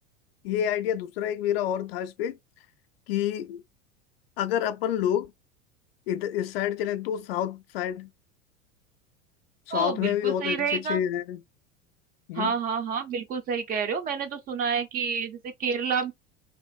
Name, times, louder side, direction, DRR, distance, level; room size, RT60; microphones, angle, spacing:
voice 1, 0.4-2.4 3.1-3.6 4.4-5.3 6.1-8.1 9.7-11.4 12.3-12.5, left 10 dB, 55° left, 0.5 m, -28 dB
voice 2, 9.7-11.0 12.3-16.1, right 6 dB, 25° right, 0.4 m, -29 dB
2.6 x 2.4 x 2.3 m
figure-of-eight pair, 85°, 38 cm